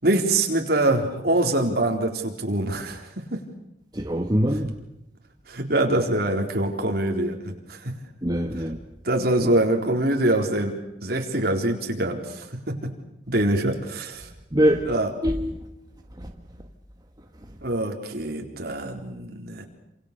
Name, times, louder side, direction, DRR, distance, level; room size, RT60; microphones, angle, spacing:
voice 1, 0.0-3.4 5.5-7.9 9.0-12.9 13.3-14.3 14.9-15.1 17.6-19.7, right 1 dB, 55° right, 4.1 m, -24 dB
voice 2, 3.9-4.7 8.2-8.8 14.5-14.9 15.2-15.7 16.2-16.3, equal, 20° right, 1.6 m, -23 dB
28.5 x 27.5 x 6.9 m
head